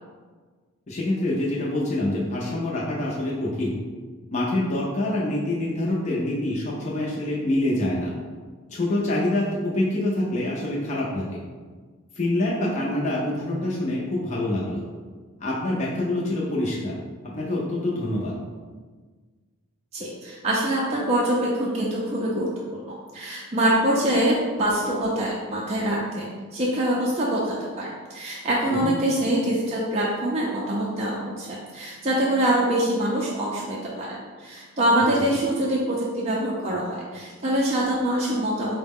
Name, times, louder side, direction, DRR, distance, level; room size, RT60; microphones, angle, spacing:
voice 1, 0.9-3.8 4.3-8.1 8.7-11.4 12.1-14.8 15.4-16.9 17.2-18.3 28.7-28.9, left 1 dB, 35° left, -5 dB, 0.5 m, -26 dB
voice 2, 19.9-38.7, right 1 dB, 30° right, -5 dB, 0.4 m, -24 dB
4.5 x 2.1 x 3.5 m, 1.5 s
head